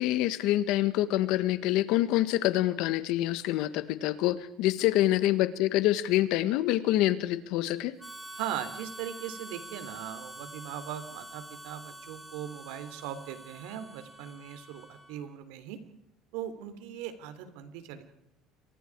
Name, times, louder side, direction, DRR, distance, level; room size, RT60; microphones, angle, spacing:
voice 1, 0.0-7.9, left 15 dB, 70° left, 13 dB, 1.7 m, -26 dB
Harmonica, 8.0-15.3, right 1 dB, 5° right, 2.7 m, -46 dB
voice 2, 8.3-15.8 16.3-18.0, right 10 dB, 90° right, 11 dB, 3.3 m, -39 dB
29.0 x 24.0 x 4.8 m, 0.76 s
cardioid pair, 150°, 0 cm